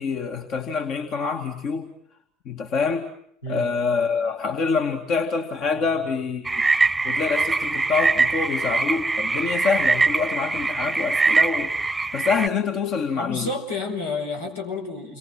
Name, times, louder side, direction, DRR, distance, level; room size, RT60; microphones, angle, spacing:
voice 1, 0.0-1.9 2.5-3.1 3.5-6.6 7.0-11.7 12.1-13.5, left 5 dB, 50° left, 3 dB, 2.4 m, -26 dB
sound 1, 6.4-12.5, right 3 dB, 15° right, 1.0 m, -22 dB
voice 2, 13.1-15.2, left 3 dB, 85° left, 1 dB, 6.1 m, -30 dB
29.5 x 23.0 x 7.7 m, 0.69 s
hypercardioid pair, 70°, 0 cm